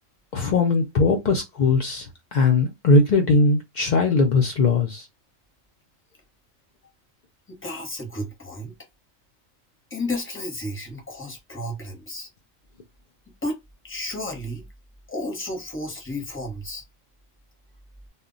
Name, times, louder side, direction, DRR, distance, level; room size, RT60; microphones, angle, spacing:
voice 1, 0.3-5.1, left 3 dB, 85° left, 0.4 m, -20 dB
voice 2, 7.5-8.7 9.9-12.3 13.4-13.6 13.8-14.6 15.1-16.8, left 1 dB, 15° left, 0.6 m, -32 dB
2.1 x 2.1 x 3.7 m
omnidirectional pair, 1.4 m